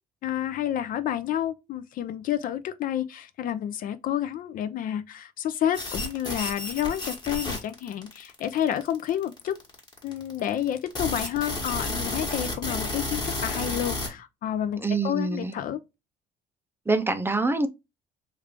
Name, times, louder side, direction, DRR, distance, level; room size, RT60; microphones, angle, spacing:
voice 1, 0.2-9.6 10.0-15.8, left 10 dB, 55° left, 0.4 m, -30 dB
sound 1, 5.7-14.1, left 2 dB, 25° left, 1.2 m, -32 dB
voice 2, 14.8-15.6 16.9-17.7, right 3 dB, 15° right, 0.5 m, -25 dB
3.2 x 2.5 x 3.3 m
cardioid pair, 110°, 17 cm